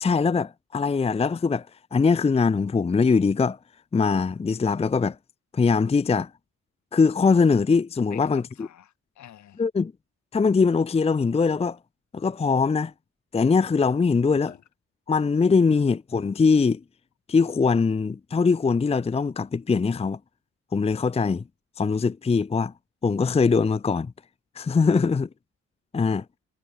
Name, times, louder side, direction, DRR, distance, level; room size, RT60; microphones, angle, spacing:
voice 1, 0.0-1.7 1.9-3.6 3.9-5.2 5.5-6.3 6.9-8.4 9.6-9.9 10.3-11.8 12.1-12.9 13.3-14.5 15.1-16.8 17.3-20.2 20.7-21.4 21.8-22.7 23.0-24.1 24.6-25.3 25.9-26.2, left 5 dB, 20° left, 0.6 m, -22 dB
voice 2, 8.1-9.6 14.4-14.6 15.7-15.8 24.9-25.1, left 11 dB, 70° left, 2.8 m, -47 dB
cardioid pair, 90°, 30 cm